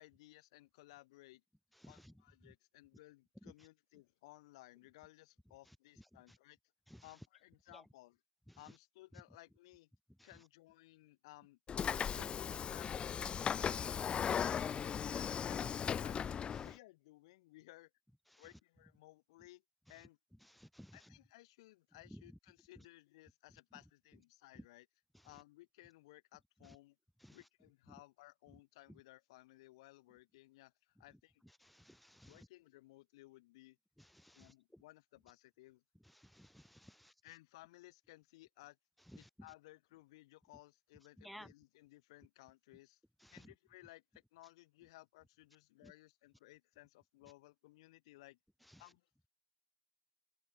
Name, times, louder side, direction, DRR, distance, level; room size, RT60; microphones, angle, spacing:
voice 1, 0.0-1.4 1.9-6.6 7.0-8.2 8.6-9.9 10.2-11.6 12.1-17.9 18.4-19.6 19.9-20.2 20.9-24.9 25.2-27.0 27.3-31.4 32.3-33.8 34.3-35.8 37.2-38.8 39.2-43.0 43.3-48.4 48.8-49.1, left 19 dB, 70° left, 5.0 m, -60 dB
Train / Sliding door, 11.7-16.7, left 8 dB, 35° left, 1.5 m, -37 dB
voice 2, 20.6-20.9 31.9-32.3 34.2-34.4 36.4-37.1 41.2-41.5, equal, ahead, 1.6 m, -55 dB
hypercardioid pair, 75°, 3 cm